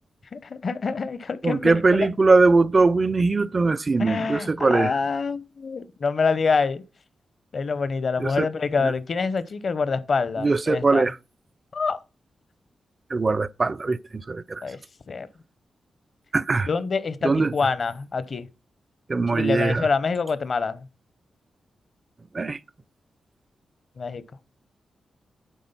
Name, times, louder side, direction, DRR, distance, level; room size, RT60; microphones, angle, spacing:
voice 1, 0.3-2.1 4.0-6.8 7.5-11.1 11.7-12.0 14.6-14.8 15.1-15.3 16.7-18.5 19.3-20.8 24.0-24.2, left 4 dB, 55° left, 0.7 m, -26 dB
voice 2, 1.4-5.0 8.2-8.5 8.8-8.9 10.4-11.1 13.1-14.6 16.3-16.7 17.2-17.5 19.1-19.9 22.3-22.6, right 3 dB, 40° right, 0.4 m, -21 dB
9.2 x 3.8 x 5.6 m
cardioid pair, 75°, 0 cm